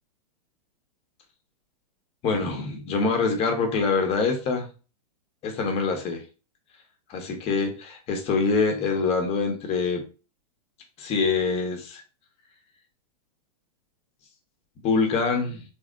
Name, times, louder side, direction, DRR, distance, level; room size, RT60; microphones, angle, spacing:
voice 1, 2.2-4.7 5.4-6.2 7.1-10.0 11.0-12.0 14.8-15.6, left 4 dB, 30° left, 1.1 m, -25 dB
3.4 x 3.1 x 2.4 m
hypercardioid pair, 120°, 20 cm